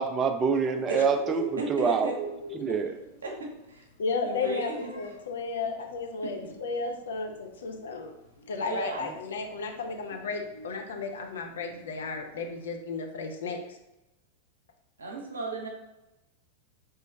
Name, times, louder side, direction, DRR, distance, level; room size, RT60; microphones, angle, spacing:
voice 1, 0.0-2.1 2.6-3.0, right 5 dB, 25° right, 6 dB, 0.4 m, -26 dB
Bird, 0.5-12.7, right 3 dB, 80° left, 1.3 m, -45 dB
voice 2, 1.6-2.1 3.2-3.3 4.2-4.9 5.6-5.7 6.2-6.3 8.6-9.0 15.0-15.7, right 3 dB, 70° right, 0 dB, 0.8 m, -34 dB
voice 3, 4.0-4.7 4.9-8.1 8.5-13.6, left 4 dB, 65° left, 3 dB, 0.5 m, -33 dB
3.1 x 3.0 x 3.3 m, 0.95 s
figure-of-eight pair, 90°, 0 cm